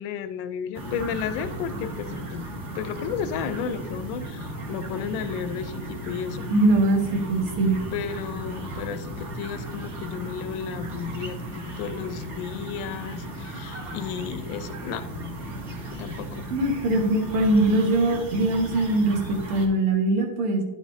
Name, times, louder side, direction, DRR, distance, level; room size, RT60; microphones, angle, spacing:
voice 1, 0.0-6.5 7.9-15.0 15.9-16.4, left 7 dB, 75° left, 11 dB, 1.2 m, -33 dB
sound 1, 0.7-19.7, right 1 dB, 40° right, 1.3 m, -36 dB
voice 2, 6.5-7.0 7.3-7.8 16.5-20.6, right 2 dB, 80° right, 2 dB, 2.2 m, -22 dB
10.5 x 7.1 x 2.7 m, 1.1 s
omnidirectional pair, 2.4 m